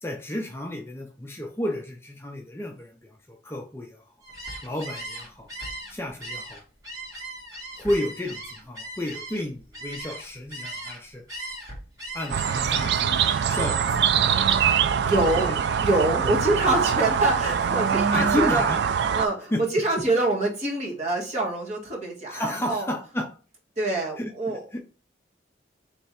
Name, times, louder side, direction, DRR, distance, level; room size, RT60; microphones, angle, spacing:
voice 1, 0.0-4.0 4.6-5.5 5.9-6.6 7.8-11.2 12.1-13.2 13.5-14.4 15.5-15.6 16.2-16.4 18.1-18.8 19.5-19.6 22.3-23.4 24.2-24.8, left 1 dB, 15° left, 2 dB, 0.5 m, -32 dB
Gull seagull, 4.2-11.0 11.3-14.0 14.4-14.9 15.2-15.7 16.1-17.5, right 1 dB, 20° right, 1.9 m, -39 dB
sound 1, 12.3-19.3, right 7 dB, 65° right, 0.3 m, -23 dB
voice 2, 15.0-15.5 15.8-18.6 19.1-22.9 23.8-24.6, right 2 dB, 35° right, -2 dB, 1.5 m, -25 dB
3.4 x 3.2 x 4.2 m, 0.37 s
head